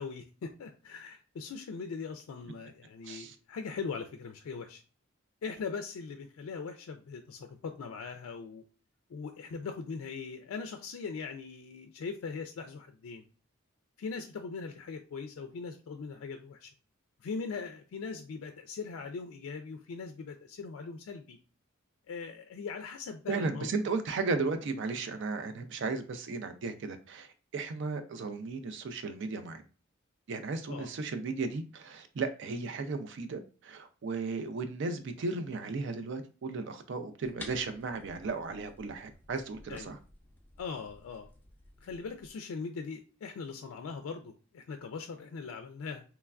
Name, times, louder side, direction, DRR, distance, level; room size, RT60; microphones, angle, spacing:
voice 1, 0.0-4.8 5.4-8.6 9.1-13.2 14.0-16.7 17.2-21.4 22.1-23.7 30.7-30.9 39.7-39.9 40.6-41.3 41.8-46.0, left 5 dB, 85° left, 6 dB, 0.3 m, -40 dB
voice 2, 3.0-3.4 23.3-29.6 30.3-40.0, right 4 dB, 60° right, 9 dB, 0.4 m, -35 dB
sound 1, 37.2-42.3, left 2 dB, 10° left, 0.4 m, -53 dB
3.1 x 2.2 x 2.3 m, 0.36 s
head